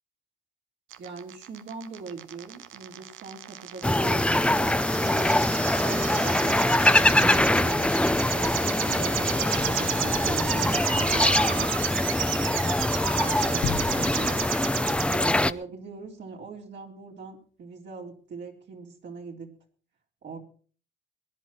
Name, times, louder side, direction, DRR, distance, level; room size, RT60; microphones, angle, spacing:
sound 1, 0.9-15.2, right 12 dB, 85° right, 1.0 m, -33 dB
voice 1, 1.0-5.3 5.8-11.7 12.3-19.5 20.2-20.4, right 5 dB, 65° right, 0 dB, 4.0 m, -41 dB
sound 2, 3.8-15.5, left 1 dB, 5° left, 0.7 m, -23 dB
sound 3, 13.6-15.6 16.0-16.1, left 9 dB, 80° left, 1.6 m, -35 dB
22.0 x 10.5 x 4.4 m, 0.42 s
cardioid pair, 90°, 20 cm